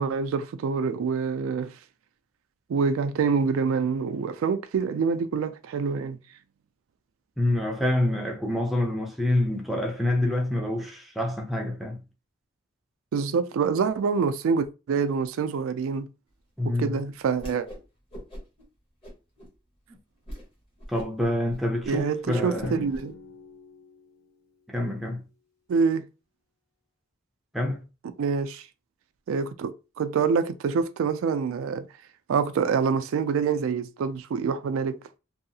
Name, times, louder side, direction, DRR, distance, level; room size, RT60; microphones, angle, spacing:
voice 1, 0.0-1.7 2.7-6.2 13.1-16.1 16.8-17.7 21.9-23.1 25.7-26.0 28.2-28.7 29.3-31.9 32.3-35.0, right 5 dB, 80° right, 0.3 m, -26 dB
voice 2, 7.4-12.0 16.6-17.0 20.9-22.8 24.7-25.2 27.5-27.8, left 1 dB, ahead, 0.5 m, -27 dB
Whoosh swoosh swish, 17.3-17.8 18.1-18.6 19.0-19.5 19.9-20.0 20.3-20.5 20.8-23.0, equal, 25° left, 1.0 m, -42 dB
Drum, 22.6-24.8, left 2 dB, 80° left, 0.8 m, -42 dB
2.7 x 2.3 x 2.7 m
head